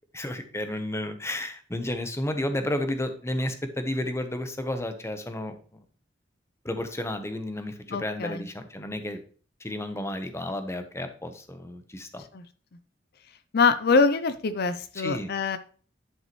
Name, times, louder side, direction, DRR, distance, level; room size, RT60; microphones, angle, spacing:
voice 1, 0.1-5.6 6.6-9.2 9.6-12.2 14.9-15.3, left 1 dB, 15° left, 8 dB, 0.9 m, -32 dB
voice 2, 7.9-8.4 12.3-12.4 13.5-15.6, left 4 dB, 60° left, 12 dB, 0.5 m, -24 dB
10.5 x 5.5 x 3.1 m, 0.42 s
head